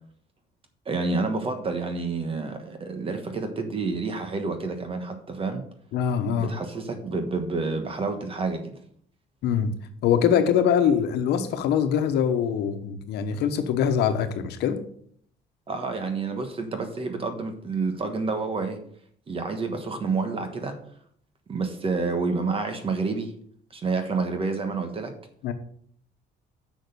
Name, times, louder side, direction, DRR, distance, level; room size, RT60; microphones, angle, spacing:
voice 1, 0.8-5.7 6.4-8.7 15.7-18.8 19.3-20.8 21.5-23.3 23.7-25.1, right 4 dB, 35° right, 6 dB, 1.3 m, -29 dB
voice 2, 5.9-6.5 9.4-9.7 10.0-14.8 25.4-25.5, left 8 dB, 80° left, 8 dB, 1.1 m, -23 dB
6.3 x 6.2 x 6.8 m, 0.63 s
cardioid pair, 110°, 17 cm